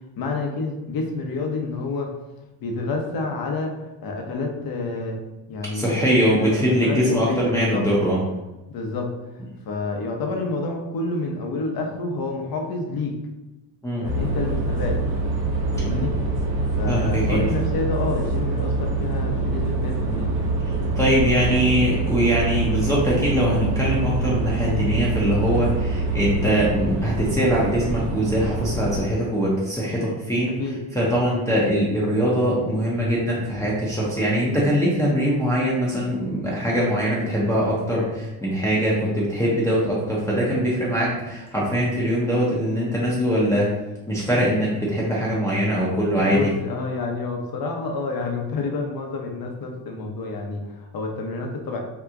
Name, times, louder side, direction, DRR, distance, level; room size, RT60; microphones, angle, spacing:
voice 1, 0.2-2.1 2.6-5.2 5.5-6.6 6.8-7.8 8.7-9.1 9.7-13.2 14.0-15.0 15.8-16.5 16.8-20.4 30.6-30.8 46.2-51.8, left 3 dB, 50° left, 2 dB, 0.8 m, -28 dB
voice 2, 5.7-8.2 13.8-14.1 16.9-17.4 21.0-30.5 30.9-43.7 44.1-46.5, equal, 5° left, -7 dB, 0.7 m, -22 dB
sound 1, 14.0-29.1, right 3 dB, 90° right, 0.8 m, -25 dB
2.9 x 2.3 x 3.5 m, 1.0 s
cardioid pair, 105°, 46 cm